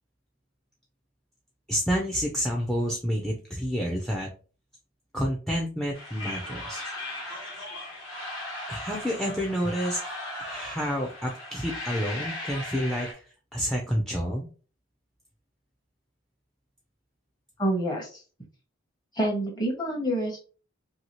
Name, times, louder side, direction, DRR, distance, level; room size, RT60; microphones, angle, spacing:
voice 1, 1.7-4.3 5.1-6.8 8.7-10.0 10.4-13.1 13.5-14.5, equal, ahead, -1 dB, 0.4 m, -29 dB
sound 1, 5.9-13.1, left 1 dB, 85° left, 1.4 m, -37 dB
voice 2, 17.6-18.1 19.2-20.4, right 1 dB, 20° left, 0 dB, 0.9 m, -27 dB
2.8 x 2.7 x 2.9 m, 0.38 s
head